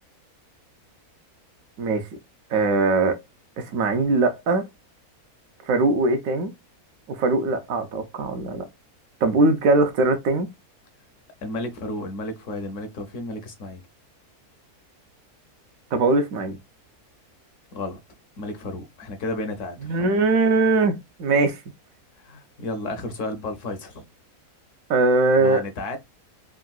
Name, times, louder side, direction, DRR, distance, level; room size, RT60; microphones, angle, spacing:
voice 1, 2.5-3.2 3.6-4.7 5.7-6.5 7.1-8.7 9.2-10.5 15.9-16.6 19.8-21.6 24.9-25.6, right 3 dB, 70° right, 1.0 m, -21 dB
voice 2, 11.4-13.8 17.7-18.0 18.4-20.1 22.2-24.1 25.4-26.0, left 2 dB, 65° left, 0.9 m, -32 dB
3.6 x 2.2 x 2.3 m
omnidirectional pair, 1.6 m